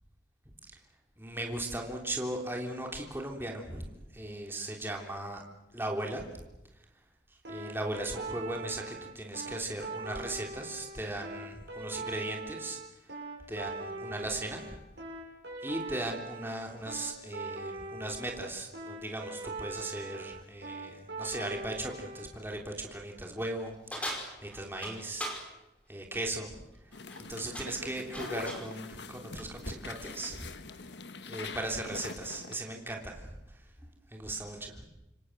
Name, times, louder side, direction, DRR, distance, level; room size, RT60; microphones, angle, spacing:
voice 1, 1.2-3.9 4.1-5.4 5.7-6.4 7.5-12.8 13.5-14.8 15.6-24.1 24.4-25.5 25.9-26.6 27.3-30.5 31.3-33.6 34.1-34.8, right 1 dB, 10° right, 1 dB, 3.3 m, -37 dB
sound 1, 7.4-22.3, right 3 dB, 75° right, 7.0 m, -41 dB
sound 2, 23.9-25.5 26.9-27.2 27.5-28.7, equal, 5° left, 5.1 m, -39 dB
sound 3, 26.9-32.6, left 4 dB, 75° left, 1.2 m, -43 dB
27.5 x 24.0 x 7.9 m, 0.96 s
head